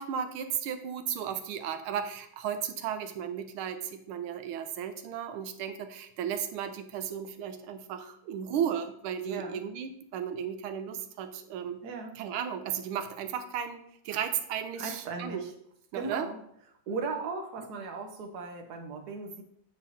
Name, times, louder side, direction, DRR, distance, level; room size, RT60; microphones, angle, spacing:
voice 1, 0.0-11.8 12.2-15.5 15.9-16.3, right 8 dB, 85° right, 8 dB, 1.5 m, -35 dB
voice 2, 9.3-9.6 11.8-12.1 14.8-15.5 15.9-16.4 16.9-19.4, right 4 dB, 55° right, 3 dB, 1.3 m, -37 dB
8.7 x 5.0 x 2.8 m, 0.69 s
omnidirectional pair, 2.3 m